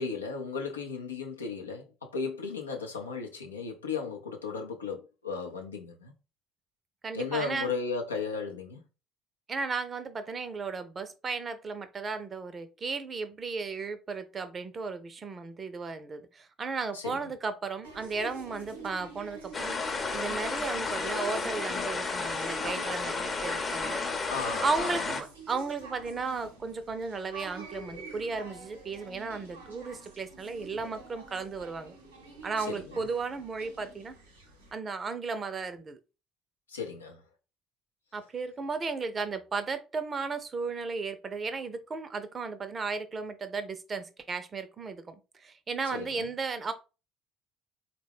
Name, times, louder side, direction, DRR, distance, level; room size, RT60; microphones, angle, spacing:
voice 1, 0.0-6.1 7.1-8.8 16.9-17.2 24.3-25.1 32.6-33.1 36.7-37.2 45.9-46.2, left 5 dB, 85° left, 0.5 m, -35 dB
voice 2, 7.0-7.7 9.5-19.8 20.1-24.0 24.6-32.0 32.4-34.2 34.7-36.0 38.1-46.7, right 4 dB, 35° right, 0.5 m, -35 dB
sound 1, 17.8-34.8, right 3 dB, 85° right, 0.7 m, -48 dB
sound 2, 19.5-25.2, left 4 dB, 30° left, 0.7 m, -32 dB
3.6 x 2.2 x 3.4 m
figure-of-eight pair, 55°, 0 cm